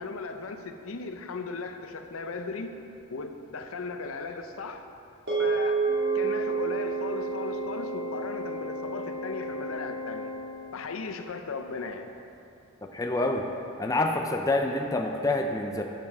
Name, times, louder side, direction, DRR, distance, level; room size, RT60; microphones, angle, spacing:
voice 1, 0.0-2.8 3.1-4.9 5.4-10.3 10.7-12.1, left 4 dB, 80° left, 7 dB, 0.6 m, -37 dB
sound 1, 5.3-9.8, right 5 dB, 50° right, 2.2 m, -30 dB
Organ, 5.9-10.9, left 3 dB, 55° left, 1.9 m, -37 dB
voice 2, 12.9-13.5 13.8-15.8, left 2 dB, 15° left, 2 dB, 0.4 m, -27 dB
11.5 x 7.5 x 3.5 m, 2.7 s
head